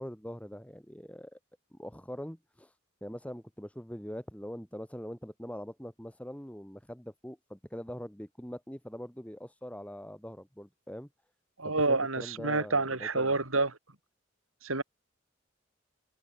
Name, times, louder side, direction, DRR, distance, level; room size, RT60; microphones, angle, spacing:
voice 1, 0.0-1.4 1.7-2.7 3.0-11.1 11.6-13.4, equal, 5° left, 4.7 m, -43 dB
voice 2, 11.6-13.7 14.6-14.8, right 3 dB, 90° right, 6.2 m, -28 dB
head